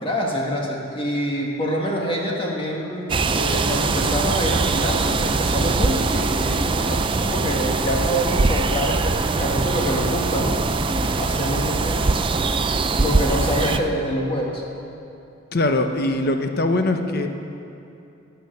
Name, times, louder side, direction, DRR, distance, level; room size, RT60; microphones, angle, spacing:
voice 1, 0.0-12.1 13.0-14.6, equal, 25° left, -1 dB, 1.7 m, -26 dB
sound 1, 3.1-13.8, right 3 dB, 25° right, 0.4 m, -22 dB
voice 2, 15.5-17.3, left 2 dB, 50° left, 6 dB, 0.8 m, -21 dB
15.5 x 9.2 x 6.8 m, 2.7 s
head